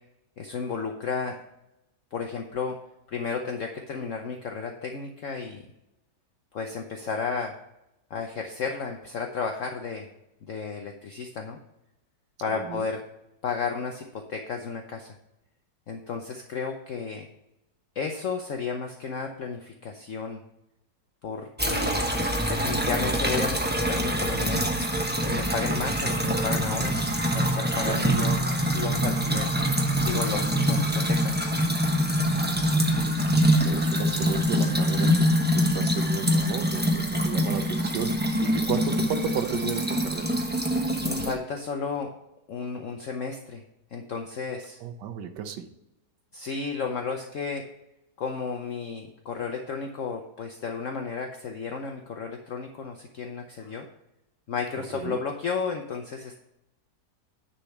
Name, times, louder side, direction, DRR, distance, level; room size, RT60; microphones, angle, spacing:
voice 1, 0.4-1.4 2.1-2.8 3.1-5.6 6.5-7.5 8.1-10.1 10.4-11.6 12.4-13.1 13.4-15.1 15.9-17.3 17.9-20.4 21.2-22.1 22.5-24.7 25.2-27.0 27.3-28.4 28.7-29.7 30.0-31.5 41.0-42.1 42.5-43.6 43.9-44.8 46.3-47.7 48.2-53.9 54.5-56.4, left 5 dB, 60° left, 4 dB, 1.0 m, -33 dB
sound 1, 21.6-41.3, equal, 10° right, 0.7 m, -25 dB
voice 2, 32.5-33.2 33.6-40.3 44.8-45.7 54.9-55.2, right 9 dB, 85° right, 8 dB, 1.4 m, -34 dB
9.9 x 4.2 x 5.7 m, 0.89 s
omnidirectional pair, 1.8 m